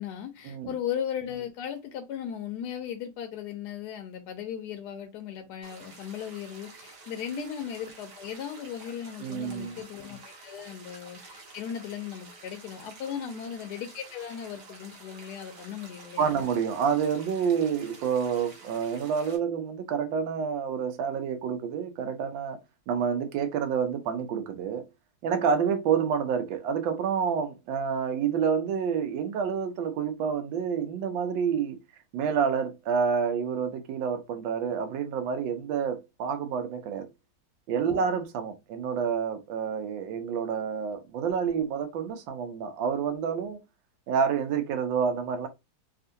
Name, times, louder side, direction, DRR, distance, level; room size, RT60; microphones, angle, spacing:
voice 1, 0.0-16.3 37.8-38.0, left 9 dB, 75° left, 0.9 m, -37 dB
sound 1, 5.6-19.4, right 3 dB, 60° right, 1.4 m, -50 dB
voice 2, 9.2-9.8 10.6-10.7 13.1-13.5 16.2-22.6 22.9-24.9 25.2-31.8 32.1-37.1 37.7-43.6 44.1-45.5, right 7 dB, 85° right, 1.3 m, -28 dB
3.5 x 2.4 x 2.6 m
omnidirectional pair, 2.1 m